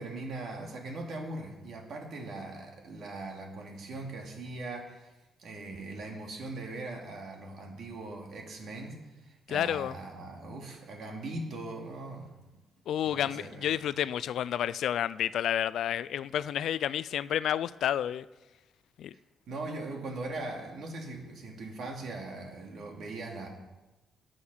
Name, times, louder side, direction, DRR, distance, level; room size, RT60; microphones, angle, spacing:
voice 1, 0.0-5.1 5.4-12.3 13.0-13.7 19.5-23.5, right 2 dB, 60° right, 2.6 m, -40 dB
voice 2, 9.5-9.9 12.9-18.3 19.0-19.1, left 10 dB, 70° left, 0.3 m, -30 dB
18.5 x 6.6 x 5.6 m
cardioid pair, 135°, 0 cm